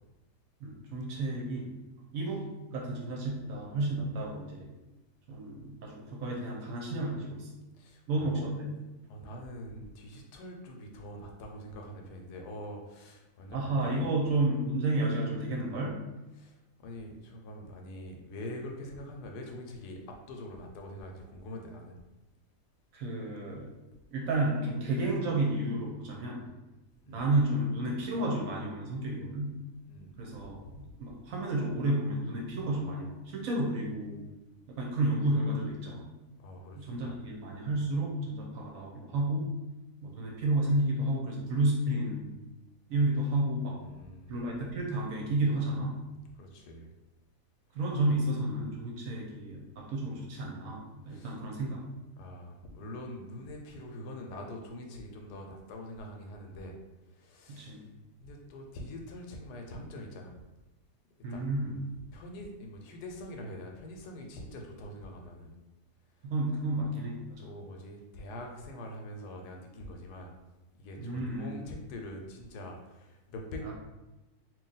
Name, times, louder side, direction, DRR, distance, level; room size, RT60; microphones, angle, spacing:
voice 1, 0.6-1.7 2.1-4.7 5.3-7.5 8.1-8.8 13.5-16.0 22.9-23.7 24.1-26.5 27.1-29.6 30.2-30.6 31.0-34.2 34.7-36.1 36.7-39.6 40.0-42.3 42.9-43.8 44.3-46.0 47.7-51.8 57.5-57.8 61.2-61.8 66.2-67.5 71.0-71.7 73.6-73.7, right 1 dB, 65° right, -2 dB, 1.1 m, -31 dB
voice 2, 7.8-8.4 9.1-14.2 16.3-22.0 27.0-27.3 29.9-30.8 36.4-37.2 43.8-44.3 46.3-46.9 51.1-51.4 52.2-56.7 57.1-57.8 58.2-60.4 61.3-61.4 62.1-65.6 67.4-70.3 70.8-73.7, left 1 dB, 85° left, 2 dB, 1.2 m, -44 dB
3.0 x 2.6 x 3.9 m, 1.0 s
omnidirectional pair, 1.7 m